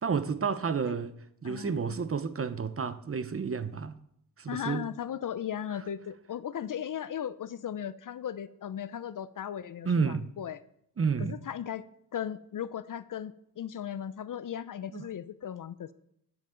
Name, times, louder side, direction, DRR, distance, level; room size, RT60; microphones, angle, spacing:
voice 1, 0.0-1.1 1.4-4.0 4.4-4.8 9.8-10.3 11.0-11.4 14.9-15.0, right 5 dB, 35° right, 0.7 m, -30 dB
voice 2, 1.4-2.0 4.5-10.6 11.2-11.8 12.1-15.9, left 9 dB, 50° left, 0.6 m, -37 dB
10.5 x 8.9 x 3.8 m
cardioid pair, 75°, 41 cm